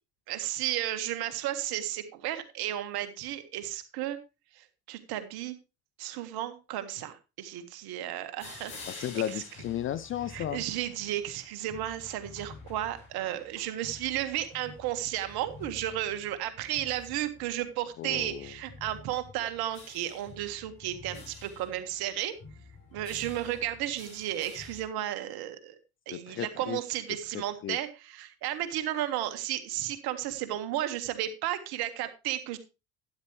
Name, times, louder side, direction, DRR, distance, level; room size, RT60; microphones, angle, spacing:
voice 1, 0.3-4.2 4.6-5.6 6.0-9.1 10.3-22.3 22.9-25.8 26.1-32.6, right 12 dB, 50° right, 9 dB, 1.8 m, -33 dB
sound 1, 8.4-24.8, left 3 dB, 45° left, 7.2 m, -49 dB
voice 2, 8.9-10.6 18.0-18.5 26.1-26.8 27.3-27.8, left 11 dB, 30° left, 14 dB, 0.5 m, -34 dB
12.0 x 10.5 x 3.2 m, 0.28 s
figure-of-eight pair, 60°, 47 cm